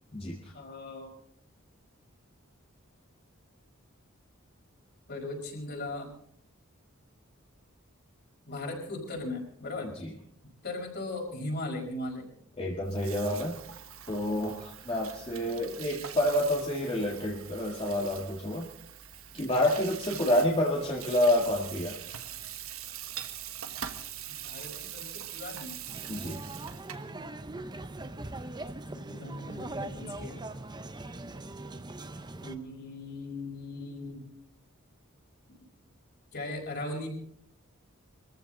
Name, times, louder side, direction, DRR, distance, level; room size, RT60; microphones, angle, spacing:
voice 1, 0.5-1.1 5.1-6.1 8.5-9.9 10.6-12.3 20.1-20.4 24.4-25.8 29.1-30.4 32.4-34.2 36.3-37.1, left 2 dB, 50° left, 0 dB, 5.2 m, -38 dB
voice 2, 12.6-13.6 14.1-18.7 19.3-22.0 26.1-26.4, left 1 dB, 25° left, -2 dB, 1.8 m, -28 dB
Water tap faucet / Sink (filling or washing), 12.8-27.1, right 10 dB, 90° right, 1.4 m, -43 dB
sound 1, 25.9-32.6, right 2 dB, 20° right, 0.8 m, -41 dB
24.0 x 14.5 x 3.9 m, 0.68 s
head